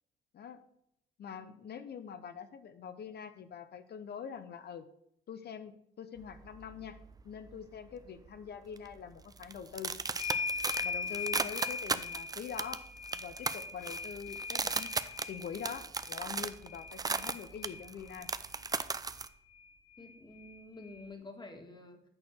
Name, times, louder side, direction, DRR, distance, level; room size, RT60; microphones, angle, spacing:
voice 1, 1.2-4.8 5.3-7.0 7.2-9.9 10.8-12.8 13.1-14.9 15.3-18.3, left 7 dB, 55° left, 10 dB, 0.7 m, -44 dB
sound 1, 6.2-7.6 7.9-8.3 8.8-19.3, right 4 dB, 20° right, 0.4 m, -37 dB
sound 2, 10.2-18.3 19.6-19.7 19.9-21.0, left 5 dB, 90° left, 2.4 m, -40 dB
voice 2, 20.0-22.0, left 2 dB, 20° left, 4 dB, 1.8 m, -49 dB
8.7 x 4.3 x 6.3 m, 0.75 s
cardioid pair, 90°, 20 cm